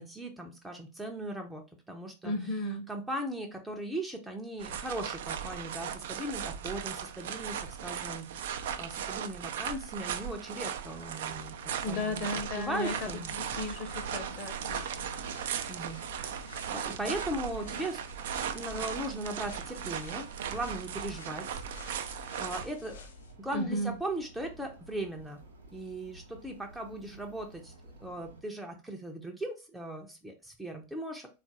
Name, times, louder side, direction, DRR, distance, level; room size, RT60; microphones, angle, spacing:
voice 1, 0.0-2.3 2.9-12.3 12.6-13.4 15.7-18.3 18.5-23.1 23.4-25.4 25.7-27.7 28.0-31.3, right 1 dB, 5° right, 0.5 m, -38 dB
voice 2, 2.2-2.8 11.8-15.1 23.5-23.9, left 1 dB, 40° left, 0.9 m, -35 dB
sound 1, 4.6-22.7, right 8 dB, 55° right, 0.3 m, -37 dB
sound 2, 11.3-28.4, right 1 dB, 70° right, 0.7 m, -51 dB
sound 3, 12.7-23.3, left 4 dB, 65° left, 0.6 m, -51 dB
3.7 x 2.4 x 2.7 m
figure-of-eight pair, 90°, 0 cm